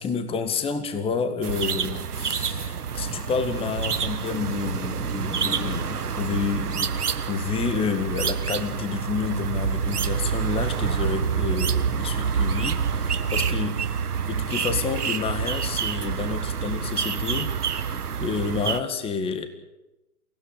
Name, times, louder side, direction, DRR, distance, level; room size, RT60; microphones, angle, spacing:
voice 1, 0.0-6.9 7.3-13.9 14.3-17.5 18.2-19.5, left 6 dB, 10° left, 10 dB, 1.8 m, -29 dB
sound 1, 1.4-18.8, right 7 dB, 85° right, 1.5 m, -27 dB
25.0 x 16.5 x 8.7 m, 0.97 s
hypercardioid pair, 135°, 45 cm